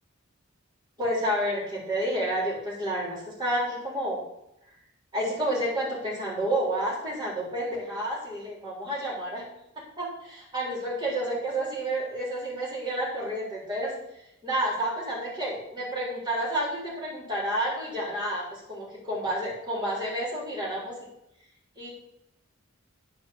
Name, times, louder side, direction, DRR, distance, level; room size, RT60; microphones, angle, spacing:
voice 1, 1.0-4.2 5.1-9.4 10.0-13.9 14.4-21.0 21.8-21.9, right 1 dB, 20° right, -6 dB, 3.8 m, -30 dB
10.0 x 4.8 x 7.1 m, 0.82 s
head